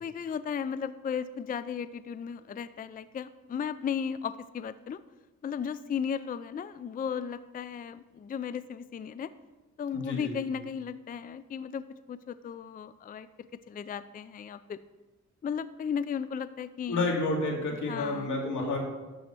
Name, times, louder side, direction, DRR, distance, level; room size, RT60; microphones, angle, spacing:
voice 1, 0.0-5.0 5.4-9.3 9.8-11.8 12.1-14.8 15.4-17.1 17.9-18.3, left 7 dB, 30° left, 14 dB, 0.4 m, -35 dB
voice 2, 9.9-10.4 16.9-18.8, left 2 dB, 90° left, -1 dB, 2.5 m, -30 dB
12.0 x 4.2 x 7.7 m, 1.2 s
cardioid pair, 100°, 29 cm